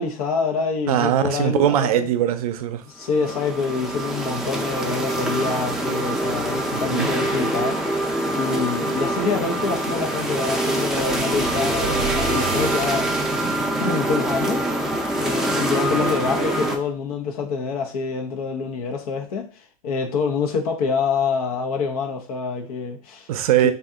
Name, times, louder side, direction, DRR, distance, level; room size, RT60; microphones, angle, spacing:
voice 1, 0.0-2.1 2.9-13.3 13.8-14.7 15.2-23.3 23.6-23.7, left 5 dB, 80° left, 0.8 m, -26 dB
voice 2, 0.9-2.8 6.7-7.1 23.3-23.7, right 11 dB, 80° right, 0.5 m, -21 dB
sound 1, 3.0-16.8, right 1 dB, ahead, 0.4 m, -24 dB
sound 2, 10.9-13.7, right 7 dB, 60° right, 0.8 m, -31 dB
2.8 x 2.3 x 3.5 m
supercardioid pair, 120°, 19 cm